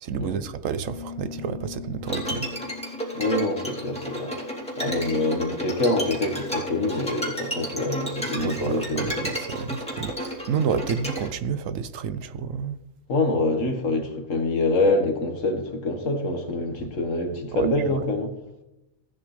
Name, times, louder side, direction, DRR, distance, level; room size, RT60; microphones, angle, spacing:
voice 1, 0.0-2.5 8.4-12.8 17.5-18.0, right 6 dB, 70° right, 1.0 m, -30 dB
Piano, 0.9-9.4, left 8 dB, 45° left, 3.3 m, -44 dB
Bowed string instrument, 2.1-11.3, equal, 5° left, 2.6 m, -32 dB
voice 2, 3.2-4.4 4.8-9.3 13.1-18.3, left 2 dB, 60° left, 1.9 m, -25 dB
15.5 x 9.5 x 3.2 m
omnidirectional pair, 1.5 m